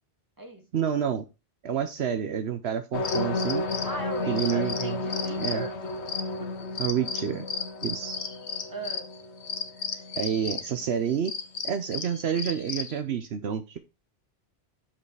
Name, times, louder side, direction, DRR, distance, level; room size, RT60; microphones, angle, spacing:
voice 1, 0.7-1.3 1.6-3.6 4.3-5.0 5.4-5.6 6.8-7.4 7.8-8.2 10.2-11.3 11.6-13.8, right 8 dB, 70° right, 1.0 m, -29 dB
sound 1, 2.9-10.8 11.1-13.0, left 3 dB, 80° left, 1.3 m, -32 dB
voice 2, 3.8-5.8 6.4-6.7 8.7-9.1, right 1 dB, 20° right, 2.2 m, -38 dB
7.2 x 5.4 x 4.8 m
omnidirectional pair, 1.1 m